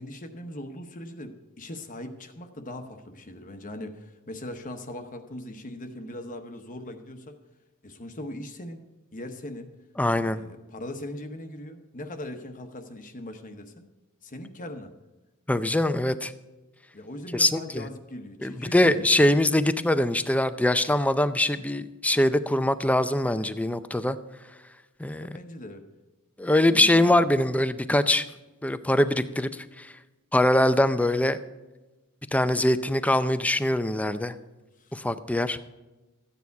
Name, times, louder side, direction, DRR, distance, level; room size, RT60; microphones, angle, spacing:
voice 1, 0.0-7.4 7.8-8.8 9.1-9.7 10.1-13.9 14.2-14.9 16.9-19.4 25.2-25.9 26.7-27.2 34.8-35.0, left 1 dB, 35° left, 6 dB, 0.9 m, -40 dB
voice 2, 10.0-10.4 15.5-16.3 17.3-17.6 18.4-24.2 25.0-25.3 26.4-28.2 28.6-29.9 30.3-31.4 32.3-34.3 34.9-35.6, left 1 dB, 5° left, 12 dB, 0.5 m, -23 dB
14.0 x 9.5 x 4.7 m, 1.1 s
head